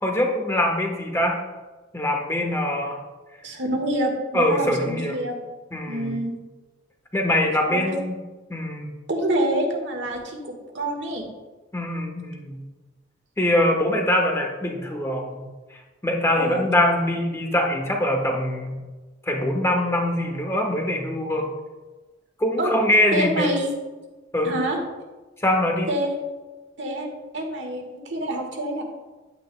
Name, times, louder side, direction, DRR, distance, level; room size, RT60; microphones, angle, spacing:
voice 1, 0.0-1.4 1.9-3.0 4.3-5.2 5.7-6.1 7.1-8.2 8.5-8.9 11.7-12.6 13.4-15.5 15.7-18.8 19.3-21.5 22.4-23.5 24.3-24.6 25.4-25.9, left 1 dB, 15° left, 2 dB, 1.1 m, -23 dB
voice 2, 3.4-5.4 5.9-6.3 7.6-8.0 9.1-10.4 10.7-11.2 16.3-16.7 22.6-22.7 23.1-23.7 24.4-24.8 25.9-26.1 26.8-28.8, right 1 dB, 70° right, 2 dB, 1.5 m, -26 dB
10.0 x 9.2 x 2.2 m, 1.2 s
head